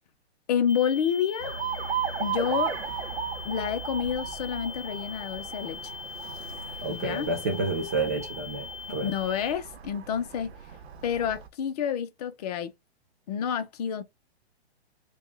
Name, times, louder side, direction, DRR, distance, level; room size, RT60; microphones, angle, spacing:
voice 1, 0.5-1.6 2.2-2.7 3.4-5.9 6.9-7.3 9.0-10.5 11.0-12.7 13.3-14.0, left 8 dB, 40° left, 0.7 m, -29 dB
sound 1, 0.7-9.5, left 6 dB, 20° left, 1.9 m, -41 dB
Alarm, 1.4-11.5, right 8 dB, 75° right, 0.9 m, -36 dB
voice 2, 6.8-9.1, right 3 dB, 15° right, 0.3 m, -30 dB
3.6 x 2.3 x 3.3 m
hypercardioid pair, 150°, 32 cm